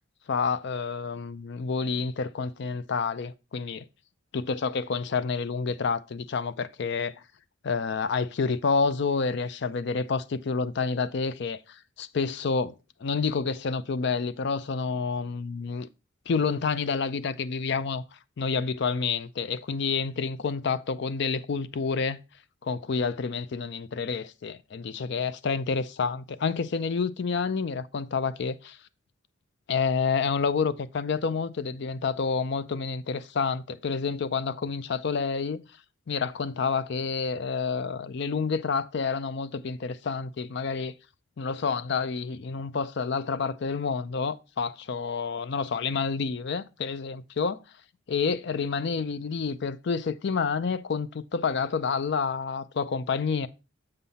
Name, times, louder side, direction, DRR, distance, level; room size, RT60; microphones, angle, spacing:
voice 1, 0.3-3.8 4.3-7.1 7.6-12.7 13.0-15.9 16.3-22.2 22.6-28.8 29.7-35.6 36.1-40.9 41.4-47.6 48.1-53.5, left 5 dB, 55° left, 0.4 m, -29 dB
6.7 x 5.6 x 4.1 m
head